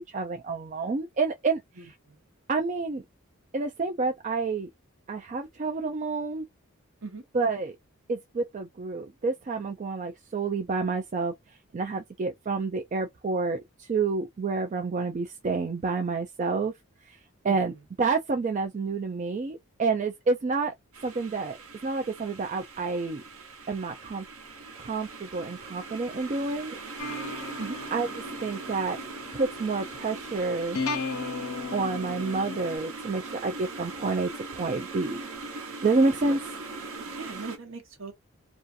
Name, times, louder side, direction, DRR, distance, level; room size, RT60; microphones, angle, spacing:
voice 1, 0.0-1.9 2.5-3.0 3.5-4.7 5.1-6.5 7.3-7.7 8.1-11.3 11.7-16.7 17.1-17.2 17.4-17.7 18.0-20.7 21.0-21.6 21.8-23.2 23.7-24.2 24.8-26.7 27.9-28.1 28.4-29.0 29.3-30.8 31.7-35.2 35.8-36.4, right 4 dB, 35° right, 0.3 m, -29 dB
voice 2, 1.8-2.2 7.0-7.2 17.4-17.8 27.6-27.8 36.0-36.4 37.1-38.1, right 3 dB, 65° right, 1.0 m, -40 dB
sound 1, 20.9-37.6, right 3 dB, 85° right, 0.8 m, -40 dB
sound 2, 27.0-32.8, left 4 dB, 75° left, 0.8 m, -36 dB
2.6 x 2.4 x 2.3 m
head